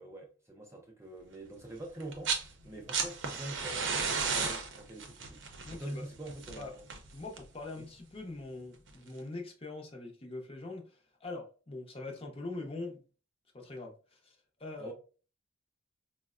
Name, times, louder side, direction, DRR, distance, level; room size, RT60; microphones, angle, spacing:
voice 1, 0.0-5.4 5.7-6.8 7.7-7.9 14.8-14.9, right 1 dB, 15° right, 0.5 m, -45 dB
sound 1, 2.0-2.5 2.7-7.6 8.9-9.0, right 5 dB, 60° right, 0.6 m, -34 dB
voice 2, 5.6-6.1 6.6-6.7 7.1-13.0 13.5-14.9, left 2 dB, 25° left, 0.6 m, -43 dB
4.4 x 2.1 x 2.3 m
head